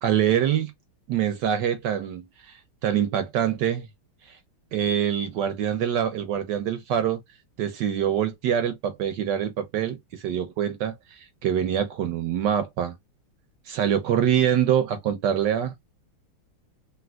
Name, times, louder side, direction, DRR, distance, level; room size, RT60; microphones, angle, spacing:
voice 1, 0.0-0.7 1.1-3.9 4.3-4.4 4.7-7.2 7.6-12.9 13.7-15.7, right 9 dB, 70° right, 1.1 m, -25 dB
3.3 x 2.7 x 2.3 m
omnidirectional pair, 2.3 m